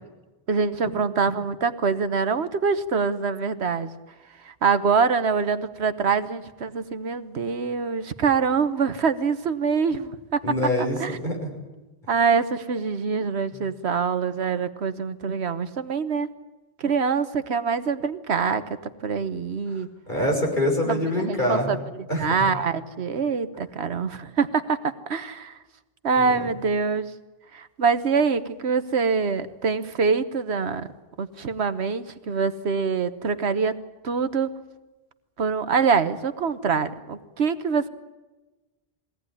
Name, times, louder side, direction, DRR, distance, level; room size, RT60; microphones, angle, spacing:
voice 1, 0.5-3.9 4.4-10.4 10.8-11.2 12.1-16.3 16.8-19.9 20.8-21.8 22.2-25.6 26.0-27.1 27.5-30.9 31.2-33.8 34.0-34.5 35.4-37.9, right 5 dB, 85° right, 11 dB, 1.4 m, -25 dB
voice 2, 10.4-11.5 19.7-21.8 22.1-22.5 26.2-26.3, left 1 dB, 50° left, 0 dB, 6.3 m, -25 dB
22.5 x 17.5 x 9.9 m, 1.1 s
omnidirectional pair, 1.1 m